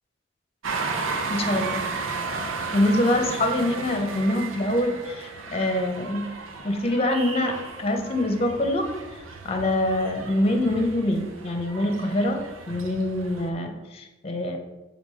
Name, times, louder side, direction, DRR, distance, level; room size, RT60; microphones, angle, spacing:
sound 1, 0.6-13.5, right 4 dB, 85° right, 0.8 m, -34 dB
voice 1, 1.3-1.8 2.7-6.3 6.6-8.9 9.4-14.6, left 1 dB, 30° left, 4 dB, 0.8 m, -25 dB
7.3 x 3.6 x 4.8 m, 1.1 s
head